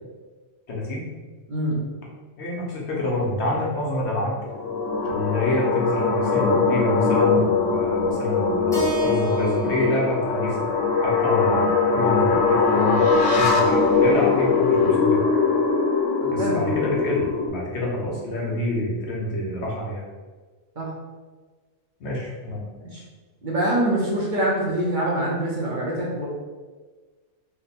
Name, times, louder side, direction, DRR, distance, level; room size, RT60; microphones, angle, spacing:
voice 1, 0.7-1.1 2.4-4.4 5.1-10.7 11.0-13.0 13.4-15.2 16.3-20.0 22.0-22.6, left 1 dB, 65° left, -3 dB, 1.1 m, -27 dB
voice 2, 1.5-1.8 16.2-16.8 20.8-20.9 22.9-23.0 23.4-26.3, right 1 dB, 50° right, -5 dB, 0.8 m, -24 dB
sound 1, 4.4-17.5, left 4 dB, 90° left, 0.9 m, -21 dB
Keyboard (musical), 8.7-12.9, right 2 dB, 5° left, 0.6 m, -35 dB
3.2 x 2.1 x 4.1 m, 1.4 s
omnidirectional pair, 1.2 m